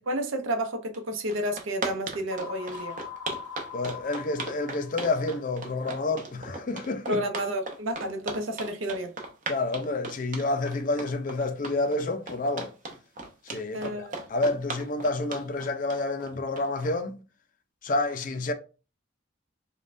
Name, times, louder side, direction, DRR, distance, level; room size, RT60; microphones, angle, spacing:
voice 1, 0.1-3.0 7.1-9.2 13.7-14.2, right 1 dB, 80° right, 0.7 m, -31 dB
sound 1, 0.9-1.0 1.3-16.9, right 3 dB, 40° right, 0.7 m, -37 dB
sound 2, 2.3-6.2, left 6 dB, 80° left, 0.7 m, -42 dB
voice 2, 3.7-7.2 9.5-12.7 13.5-17.2 17.8-18.5, left 2 dB, 40° left, 0.4 m, -29 dB
5.2 x 2.2 x 2.5 m
head